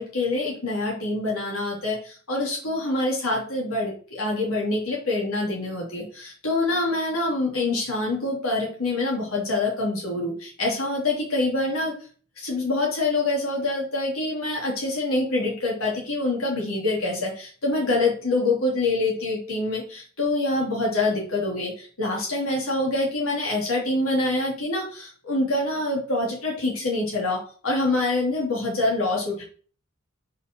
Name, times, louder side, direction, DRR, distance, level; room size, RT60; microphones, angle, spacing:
voice 1, 0.0-11.9 12.4-29.4, left 2 dB, 85° left, -4 dB, 3.2 m, -25 dB
6.2 x 5.4 x 6.2 m, 0.41 s
head